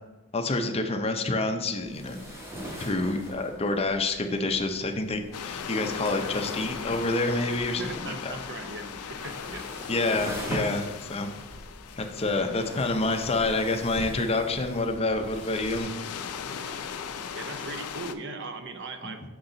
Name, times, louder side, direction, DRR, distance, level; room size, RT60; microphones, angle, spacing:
voice 1, 0.3-2.2 2.8-8.4 9.9-11.3 12.0-15.9 19.0-19.1, left 2 dB, 25° left, 5 dB, 0.5 m, -28 dB
sound 1, 1.7-15.8, equal, 10° right, 1.1 m, -42 dB
sound 2, 5.3-18.1, left 6 dB, 85° left, 0.4 m, -39 dB
voice 2, 7.8-9.6 17.3-19.3, right 3 dB, 50° right, 7 dB, 0.6 m, -39 dB
7.0 x 4.1 x 3.8 m, 1.2 s
head